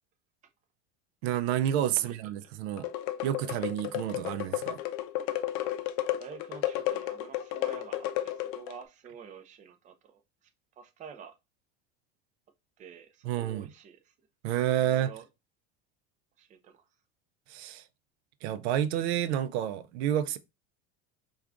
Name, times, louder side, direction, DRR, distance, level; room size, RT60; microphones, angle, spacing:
voice 1, 1.2-2.9 3.2-4.8 13.2-13.7 14.4-15.1 17.5-17.8 18.4-20.4, right 11 dB, 90° right, 0.5 m, -29 dB
voice 2, 2.0-2.5 6.2-10.5 10.8-11.4 12.8-14.3 14.7-15.3 16.4-16.9, right 7 dB, 25° right, 0.4 m, -49 dB
sound 1, 2.8-8.8, left 13 dB, 65° left, 0.5 m, -33 dB
4.5 x 2.4 x 2.4 m
supercardioid pair, 130°, 31 cm